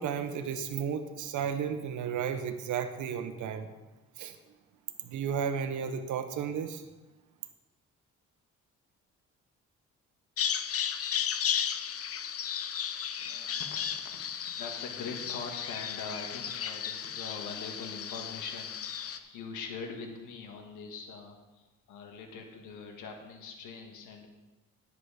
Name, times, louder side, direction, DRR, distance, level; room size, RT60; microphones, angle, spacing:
voice 1, 0.0-3.7 4.2-4.3 5.0-6.8, right 7 dB, 75° right, 7 dB, 1.1 m, -33 dB
Bird vocalization bird call bird song, 10.4-19.2, left 8 dB, 50° left, 0.8 m, -34 dB
voice 2, 13.2-24.3, left 5 dB, 85° left, 3 dB, 1.6 m, -43 dB
10.5 x 8.3 x 4.9 m, 1.1 s
cardioid pair, 90°, 30 cm